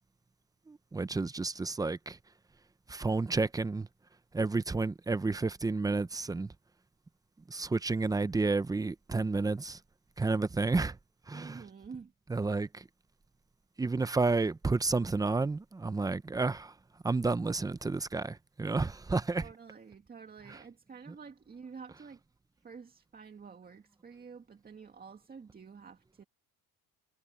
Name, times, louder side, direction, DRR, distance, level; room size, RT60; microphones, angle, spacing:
voice 1, 0.7-2.2 2.9-3.9 4.3-6.5 7.5-9.8 10.2-11.0 11.3-11.6 12.3-12.8 13.8-16.7 17.0-19.5 20.5-20.6 21.1-21.2, right 3 dB, 10° right, 0.6 m, -31 dB
voice 2, 11.3-12.1 19.3-22.2 22.6-26.2, right 5 dB, 25° right, 1.9 m, -49 dB
cardioid pair, 135°, 35 cm